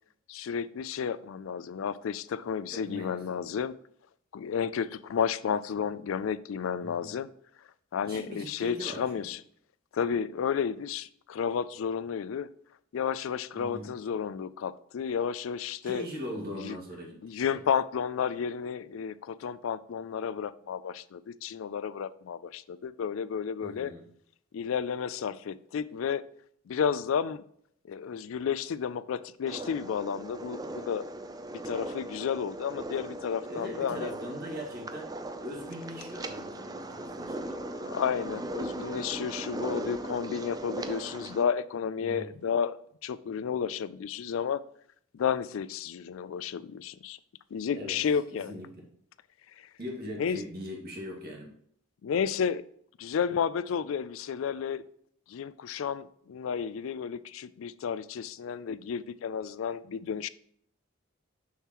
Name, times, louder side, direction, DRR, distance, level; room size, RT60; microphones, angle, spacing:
voice 1, 0.3-3.7 4.3-7.3 7.9-9.4 9.9-12.5 12.9-16.0 16.6-16.8 17.2-23.9 24.5-26.2 26.7-27.4 27.9-31.0 31.7-34.1 37.8-44.6 45.1-47.2 47.5-48.5 49.6-49.7 50.2-50.4 52.0-52.6 53.0-54.8 55.3-60.3, left 7 dB, 75° left, 15 dB, 0.4 m, -32 dB
voice 2, 2.7-3.4 6.8-7.1 8.0-9.2 13.5-13.9 15.8-17.2 17.5-17.6 23.6-24.0 33.5-37.4 42.0-42.3 47.7-48.0 48.3-48.8 49.8-51.5, equal, 50° right, 0 dB, 2.1 m, -40 dB
sound 1, 29.5-41.4, right 1 dB, 20° right, 0.5 m, -38 dB
6.6 x 6.4 x 3.0 m, 0.66 s
head